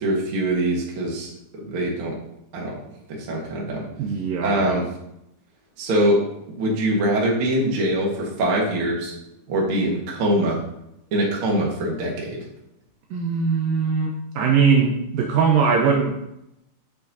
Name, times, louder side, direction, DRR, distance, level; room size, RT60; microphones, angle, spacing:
voice 1, 0.0-2.1 2.5-2.7 3.1-3.8 4.4-4.9 5.8-9.1 9.5-10.6 11.1-12.4, right 1 dB, 55° right, -2 dB, 1.5 m, -23 dB
voice 2, 4.0-4.6 13.1-16.2, right 5 dB, 80° right, 1 dB, 2.1 m, -20 dB
6.7 x 6.3 x 2.8 m, 0.81 s
omnidirectional pair, 4.5 m